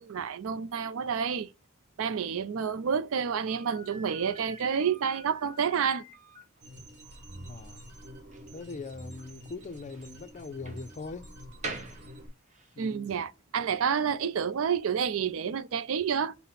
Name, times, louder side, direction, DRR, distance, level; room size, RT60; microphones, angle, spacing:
voice 1, 0.0-1.5 2.0-6.0 12.8-16.3, right 7 dB, 75° right, 0.4 m, -29 dB
Slam, 3.4-12.8, right 2 dB, 35° right, 0.8 m, -47 dB
sound 1, 6.6-12.3, equal, 55° right, 1.6 m, -47 dB
voice 2, 7.4-7.8 8.5-11.4 12.7-13.1, left 4 dB, 35° left, 0.4 m, -41 dB
5.7 x 2.0 x 4.0 m
head